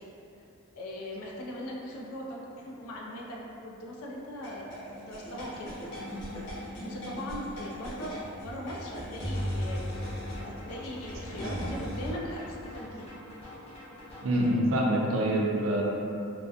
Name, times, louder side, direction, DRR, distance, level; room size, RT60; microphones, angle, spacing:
voice 1, 0.7-5.8 6.8-13.2, equal, 80° left, -3 dB, 0.4 m, -40 dB
sound 1, 4.4-12.1, equal, 55° left, 0.8 m, -37 dB
sound 2, 5.8-6.6 9.3-14.6, left 1 dB, 25° left, 0.5 m, -47 dB
voice 2, 14.2-15.8, right 1 dB, 65° right, -2 dB, 0.4 m, -25 dB
2.6 x 2.1 x 2.4 m, 2.7 s
head